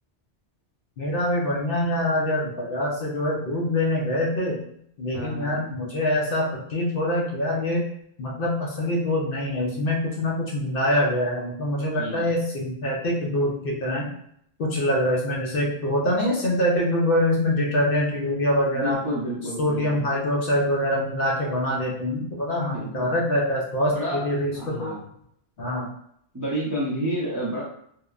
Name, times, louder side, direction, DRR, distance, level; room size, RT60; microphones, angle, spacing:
voice 1, 1.0-4.6 5.0-7.8 8.2-14.1 14.6-19.0 19.6-24.5 24.8-25.0 25.6-25.9, left 1 dB, 60° left, -3 dB, 0.7 m, -24 dB
voice 2, 5.1-5.6 12.0-12.3 18.7-20.0 22.7-23.1 23.9-24.2 24.5-25.0 26.3-27.6, equal, 25° right, -7 dB, 0.4 m, -30 dB
2.9 x 2.0 x 2.3 m, 0.70 s
omnidirectional pair, 1.2 m